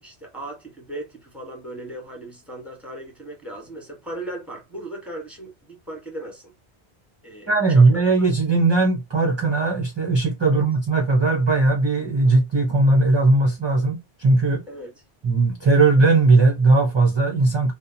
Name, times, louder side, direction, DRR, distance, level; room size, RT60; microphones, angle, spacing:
voice 1, 0.0-6.5 7.2-7.9 10.4-10.6 14.7-14.9, right 1 dB, ahead, 1.0 m, -37 dB
voice 2, 7.5-14.6 15.2-17.7, right 3 dB, 35° right, 0.5 m, -18 dB
2.8 x 2.2 x 2.5 m
omnidirectional pair, 1.1 m